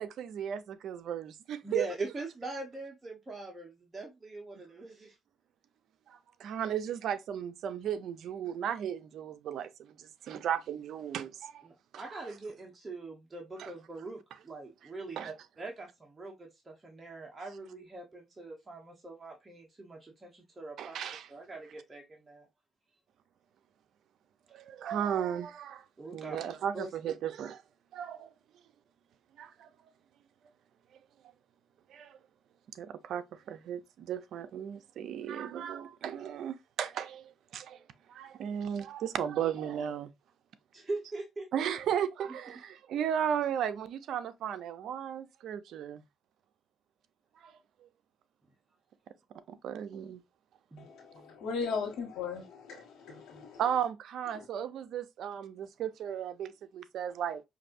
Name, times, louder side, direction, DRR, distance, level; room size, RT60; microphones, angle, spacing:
voice 1, 0.0-1.9 6.1-11.7 11.9-12.2 13.6-13.7 15.2-15.3 20.8-21.3 24.5-25.8 26.1-27.6 27.9-28.3 29.4-29.7 31.9-32.2 32.7-40.1 41.5-46.0 47.4-47.5 47.8-47.9 49.5-50.2 53.1-53.2 53.6-57.4, right 9 dB, 75° right, 0.5 m, -35 dB
voice 2, 1.6-5.2 11.6-21.0 21.3-22.5 26.0-26.4 26.7-26.9 40.7-41.5 50.7-50.9, right 2 dB, 25° right, 1.0 m, -42 dB
voice 3, 50.8-53.6, left 5 dB, 80° left, 1.3 m, -37 dB
5.2 x 2.6 x 2.5 m
cardioid pair, 90°, 0 cm